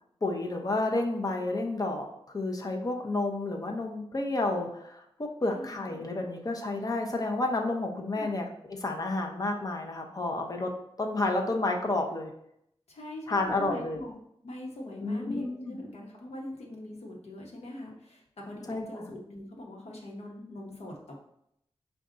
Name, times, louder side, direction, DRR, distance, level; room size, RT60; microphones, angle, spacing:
voice 1, 0.2-10.7 11.0-12.3 13.3-14.0 15.0-15.8 18.7-19.0, left 2 dB, 35° left, 2 dB, 0.6 m, -30 dB
voice 2, 5.5-5.9 8.1-8.4 12.9-21.1, left 1 dB, 90° left, -1 dB, 1.0 m, -42 dB
5.1 x 2.3 x 3.7 m, 0.75 s
wide cardioid pair, 110°, 11 cm